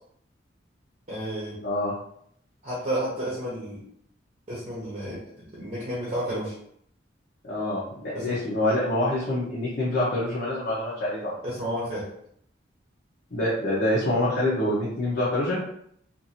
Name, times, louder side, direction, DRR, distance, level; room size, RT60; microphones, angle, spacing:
voice 1, 1.1-1.6 2.6-3.8 4.5-5.2 5.5-6.5 8.1-8.4 11.4-12.1, right 1 dB, 35° right, -7 dB, 0.8 m, -31 dB
voice 2, 1.6-1.9 7.4-11.3 13.3-15.6, left 1 dB, 55° left, -8 dB, 0.8 m, -26 dB
2.6 x 2.6 x 2.7 m, 0.68 s
head